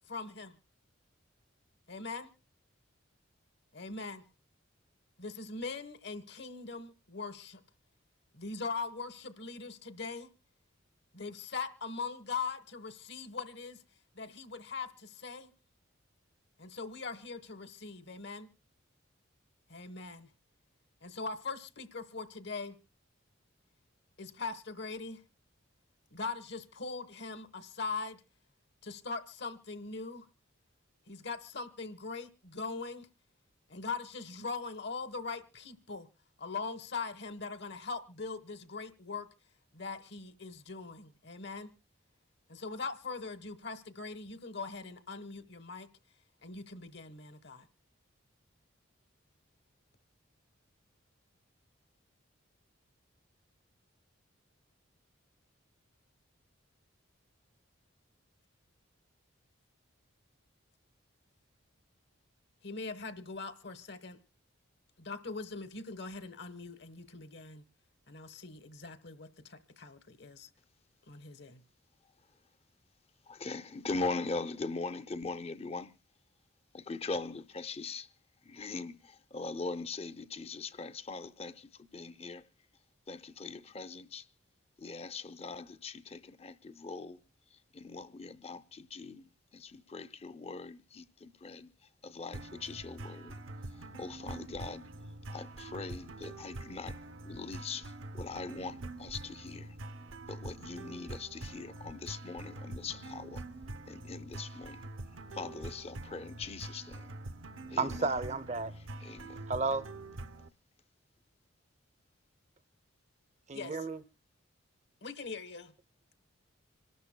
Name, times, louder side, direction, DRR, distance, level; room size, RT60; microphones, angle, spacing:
voice 1, 0.1-0.6 1.9-2.3 3.7-4.2 5.2-7.6 8.3-10.3 11.1-13.8 14.1-15.5 16.6-18.5 19.7-20.3 21.0-22.8 24.2-25.2 26.1-28.2 28.8-30.3 31.1-33.1 33.7-36.1 36.4-39.3 39.7-41.7 42.5-45.9 46.4-47.7 62.6-64.2 65.0-67.6 68.1-70.5 71.1-71.6 113.5-113.8 115.0-115.7, left 4 dB, 55° left, 1.1 m, -41 dB
voice 2, 73.3-75.9 76.7-78.1 78.4-82.5 83.1-84.3 84.8-87.2 87.5-91.7 92.0-93.4 93.7-94.9 95.3-99.8 100.3-103.4 103.9-104.9 105.3-107.2 107.7-108.1 108.7-109.5, left 3 dB, 30° left, 0.6 m, -41 dB
sound 1, 92.3-110.5, right 2 dB, 75° right, 0.7 m, -45 dB
voice 3, 107.8-108.7 109.5-109.9 113.5-114.0, right 3 dB, 35° right, 0.6 m, -32 dB
26.5 x 12.5 x 2.2 m
head